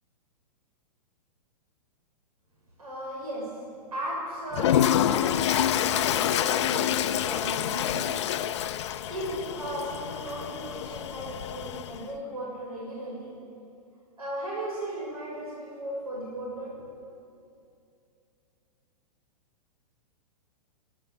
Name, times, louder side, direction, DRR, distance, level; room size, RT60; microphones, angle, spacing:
voice 1, 2.8-3.5 3.9-8.1 9.1-13.3 14.2-16.8, right 1 dB, 65° right, -4 dB, 6.6 m, -36 dB
Toilet flush, 4.5-12.0, left 10 dB, 45° left, 0.7 m, -27 dB
29.0 x 13.0 x 7.4 m, 2.5 s
figure-of-eight pair, 105°, 20 cm